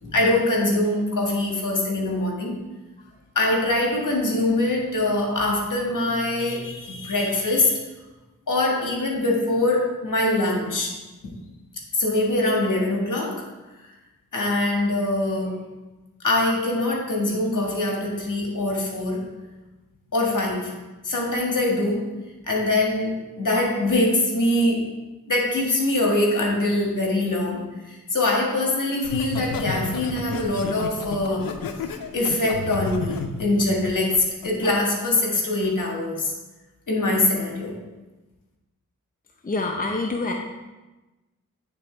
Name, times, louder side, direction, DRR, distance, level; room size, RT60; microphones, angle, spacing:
voice 1, 0.0-2.5 3.3-7.8 8.5-10.9 11.2-11.3 11.9-13.4 14.3-15.6 16.2-19.2 20.1-20.7 21.0-22.0 22.5-24.8 25.3-31.5 32.1-36.3 36.9-37.7, left 2 dB, 60° left, -1 dB, 1.7 m, -23 dB
Laughter, 29.0-34.7 35.1-35.5, left 5 dB, 80° left, 0.6 m, -32 dB
voice 2, 39.4-40.3, left 3 dB, 25° left, 2 dB, 0.7 m, -26 dB
9.1 x 3.9 x 3.3 m, 1.1 s
cardioid pair, 45°, 34 cm